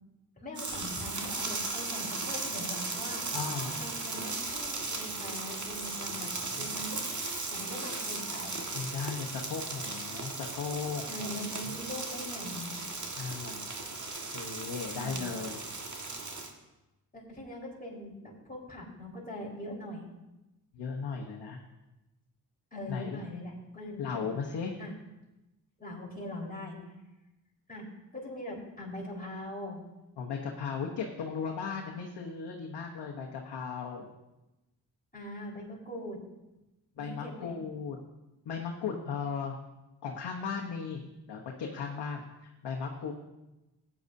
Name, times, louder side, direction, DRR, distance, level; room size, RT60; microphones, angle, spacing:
voice 1, 0.4-3.2 3.8-7.2 7.5-8.6 11.1-12.8 14.8-15.2 17.1-20.0 22.7-24.3 24.8-24.9 25.8-26.8 27.7-27.9 28.1-29.8 35.1-36.2 37.0-37.5, left 1 dB, 20° left, -4 dB, 4.3 m, -42 dB
sound 1, 0.5-16.5, right 3 dB, 45° right, 1.7 m, -37 dB
voice 2, 3.3-3.8 6.1-6.7 8.7-11.3 11.6-11.8 13.2-13.7 14.3-15.6 20.7-21.6 22.9-23.2 24.0-24.8 30.2-34.1 37.0-38.0 38.4-39.6 40.0-41.0 41.3-43.1, left 5 dB, 85° left, -1 dB, 1.1 m, -37 dB
15.0 x 9.7 x 2.7 m, 1.0 s
cardioid pair, 60°, 40 cm